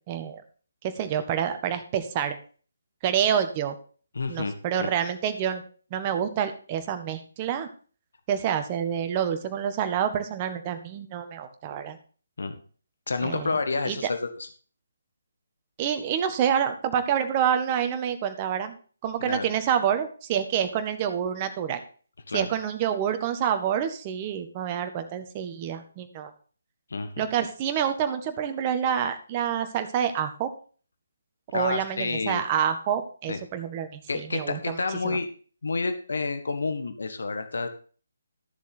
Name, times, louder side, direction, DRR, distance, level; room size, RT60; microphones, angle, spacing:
voice 1, 0.1-0.4 0.8-2.4 3.0-3.7 4.3-5.6 5.9-7.7 8.3-12.0 13.2-13.6 13.8-14.0 15.8-18.7 19.0-21.8 22.3-26.3 27.2-30.5 31.5-34.8 35.0-35.2, right 8 dB, 25° right, 8 dB, 1.6 m, -27 dB
voice 2, 4.1-4.9 12.4-12.5 13.1-14.5 19.2-19.4 22.3-22.5 26.9-27.1 31.5-32.4 33.3-33.4 34.1-35.3 35.6-37.7, left 3 dB, 65° left, 8 dB, 1.7 m, -29 dB
13.5 x 7.2 x 4.2 m, 0.40 s
figure-of-eight pair, 145°, 0 cm